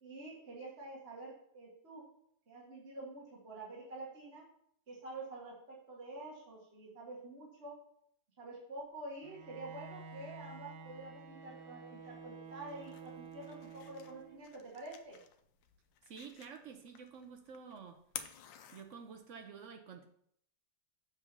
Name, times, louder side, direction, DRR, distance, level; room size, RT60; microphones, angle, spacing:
voice 1, 0.0-2.0 2.5-4.4 4.9-7.7 8.4-15.2, right 2 dB, 40° right, -4 dB, 1.6 m, -48 dB
Bowed string instrument, 9.2-14.6, right 5 dB, 85° right, 1.5 m, -51 dB
sound 1, 12.5-19.4, left 9 dB, 85° left, 1.3 m, -53 dB
voice 2, 16.0-18.0 18.7-20.1, right 6 dB, 70° right, 6 dB, 0.7 m, -50 dB
7.5 x 4.0 x 5.2 m, 0.68 s
omnidirectional pair, 2.0 m